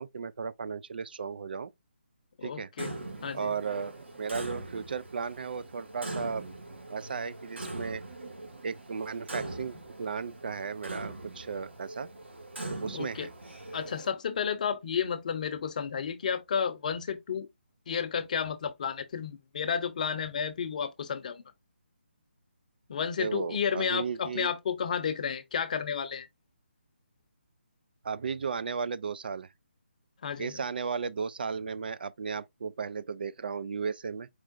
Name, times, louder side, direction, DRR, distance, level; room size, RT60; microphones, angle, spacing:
voice 1, 0.0-1.7 2.4-2.7 3.3-6.5 6.9-8.0 8.6-12.1 12.7-13.3 23.2-24.5 28.0-29.5 30.4-34.3, right 5 dB, 55° right, 0.4 m, -35 dB
voice 2, 2.4-2.9 3.2-3.5 12.9-13.3 13.7-17.5 17.9-21.4 22.9-26.3 30.2-30.6, left 7 dB, 40° left, 0.7 m, -32 dB
Clock, 2.8-14.1, right 2 dB, 80° right, 2.0 m, -42 dB
4.6 x 3.8 x 2.4 m
figure-of-eight pair, 150°, 6 cm